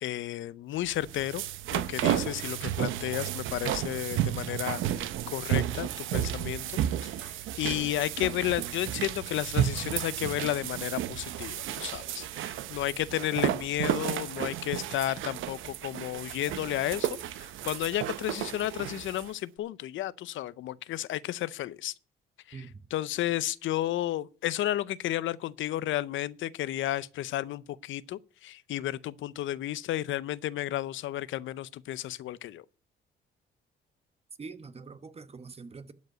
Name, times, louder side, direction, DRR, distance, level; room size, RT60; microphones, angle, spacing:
voice 1, 0.0-1.4 1.7-17.1 17.4-21.9 22.5-22.7 22.9-32.6, left 13 dB, 80° left, 0.6 m, -32 dB
sound 1, 0.9-19.3, right 11 dB, 80° right, 0.8 m, -32 dB
voice 2, 34.4-35.9, right 4 dB, 30° right, 1.0 m, -44 dB
12.0 x 5.3 x 7.9 m
cardioid pair, 90°, 20 cm